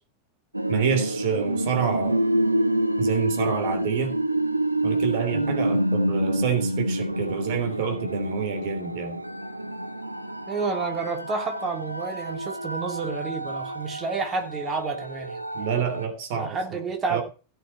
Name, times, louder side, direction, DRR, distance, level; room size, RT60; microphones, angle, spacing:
sound 1, 0.5-16.1, right 1 dB, 85° right, 0.9 m, -28 dB
voice 1, 0.7-2.2 3.0-4.2 4.8-9.2 15.5-16.8 17.1-17.2, right 7 dB, 50° right, 3.2 m, -28 dB
voice 2, 10.5-15.4 16.3-17.2, right 4 dB, 25° right, 3.1 m, -30 dB
16.5 x 6.7 x 4.4 m
figure-of-eight pair, 90°, 0 cm